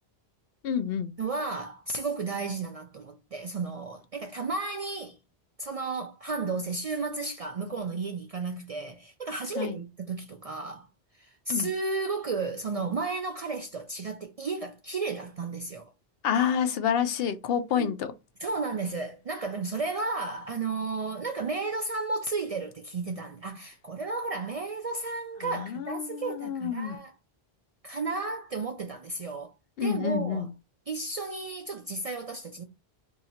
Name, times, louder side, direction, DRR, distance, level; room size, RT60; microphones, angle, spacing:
voice 1, 0.6-1.1 9.6-9.8 11.5-11.7 16.2-18.1 25.4-27.0 29.8-30.5, left 8 dB, 70° left, 0.8 m, -28 dB
voice 2, 1.2-5.2 5.6-10.9 11.2-15.8 17.8-17.9 18.4-27.1 27.8-29.5 29.8-30.5 30.9-32.6, right 3 dB, 50° right, 0.4 m, -33 dB
2.8 x 2.7 x 4.2 m
omnidirectional pair, 1.1 m